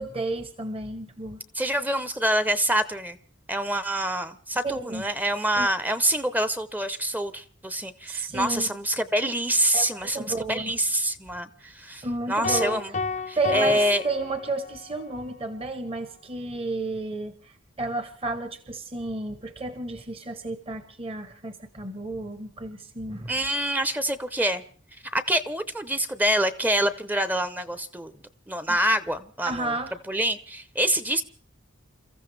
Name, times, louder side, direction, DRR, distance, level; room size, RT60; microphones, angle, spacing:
voice 1, 0.0-1.4 4.6-5.1 5.6-5.7 8.1-8.7 9.7-10.7 12.0-12.8 13.4-23.3 28.7-28.8 29.4-30.0, right 2 dB, 30° right, 1.1 m, -32 dB
voice 2, 1.5-3.2 3.5-12.9 13.3-14.0 23.3-24.6 25.1-28.1 28.5-29.7 30.1-31.2, right 1 dB, 10° right, 0.8 m, -26 dB
sound 1, 12.4-14.9, left 4 dB, 35° left, 0.7 m, -32 dB
29.0 x 14.5 x 3.4 m
head